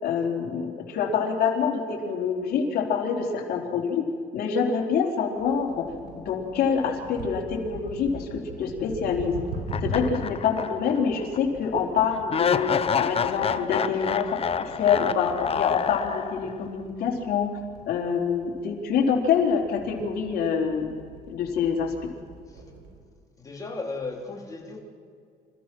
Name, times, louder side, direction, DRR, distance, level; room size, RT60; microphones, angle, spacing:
voice 1, 0.0-4.1 4.3-5.9 6.1-9.4 9.8-12.7 13.0-17.6 17.9-21.0 21.3-21.9, left 6 dB, 65° left, 0 dB, 3.9 m, -26 dB
sound 1, 5.4-23.0, right 2 dB, 80° right, 5.3 m, -41 dB
sound 2, 9.7-11.0 11.3-11.4 12.3-16.6, left 7 dB, 35° left, 0.8 m, -27 dB
voice 2, 23.4-24.8, left 3 dB, 20° left, -1 dB, 3.7 m, -35 dB
28.0 x 15.0 x 6.2 m, 2.2 s
cardioid pair, 110°, 17 cm